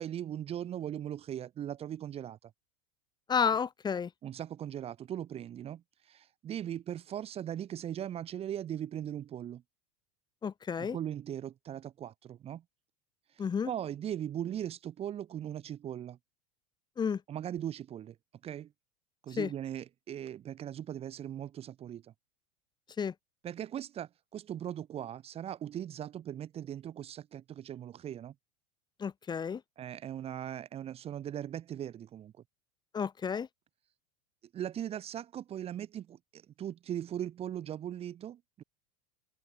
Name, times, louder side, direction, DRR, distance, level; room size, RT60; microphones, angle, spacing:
voice 1, 0.0-2.5 4.2-9.6 10.8-12.6 13.3-16.2 17.3-18.2 18.4-18.7 19.2-22.1 23.4-28.3 29.8-32.4 34.5-38.6, right 10 dB, 30° right, 2.1 m, -39 dB
voice 2, 3.3-4.1 10.4-11.0 13.4-13.7 17.0-17.2 19.4-19.5 23.0-23.1 29.0-29.6 32.9-33.5, left 6 dB, 20° left, 2.9 m, -31 dB
figure-of-eight pair, 80°, 20 cm